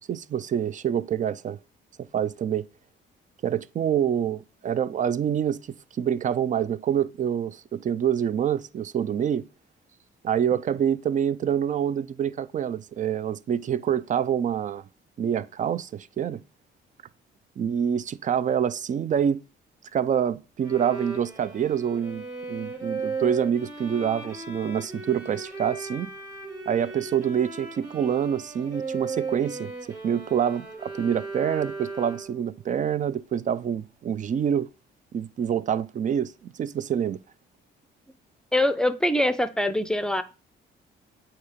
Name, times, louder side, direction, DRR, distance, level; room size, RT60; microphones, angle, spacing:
voice 1, 0.1-1.6 2.1-2.7 3.4-9.5 10.2-14.8 15.2-16.4 17.6-19.4 19.9-26.1 26.7-34.7 35.1-37.2, right 8 dB, 40° right, 0.4 m, -26 dB
Bowed string instrument, 20.6-32.5, right 4 dB, 15° right, 3.7 m, -36 dB
voice 2, 38.5-40.2, left 1 dB, 5° left, 0.6 m, -23 dB
8.4 x 2.9 x 5.0 m
cardioid pair, 90°, 20 cm